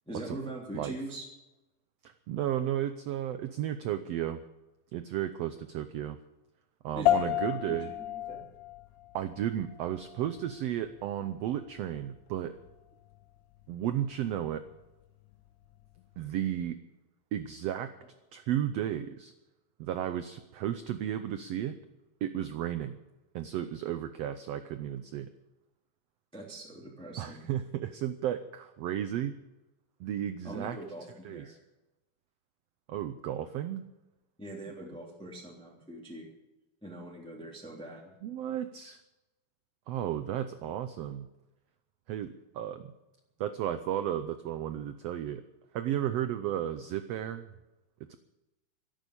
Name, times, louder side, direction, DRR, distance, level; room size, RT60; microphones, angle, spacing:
voice 1, 0.1-1.3 6.9-8.4 26.3-27.5 30.4-31.5 34.4-36.3 36.8-38.1, right 1 dB, ahead, -2 dB, 2.5 m, -42 dB
voice 2, 2.0-4.4 4.9-6.2 6.8-7.9 9.1-12.5 13.7-14.6 16.2-16.8 17.3-17.9 18.3-19.3 19.8-21.7 22.2-23.0 23.3-25.3 27.2-29.3 30.0-30.8 31.2-31.6 32.9-33.8 38.2-39.0 39.9-41.3 42.1-42.9 43.4-45.4 45.7-47.5 48.1-48.2, right 11 dB, 90° right, 10 dB, 1.4 m, -33 dB
sound 1, 7.1-16.6, left 13 dB, 75° left, 2.0 m, -35 dB
13.0 x 11.5 x 8.4 m, 1.0 s
omnidirectional pair, 3.8 m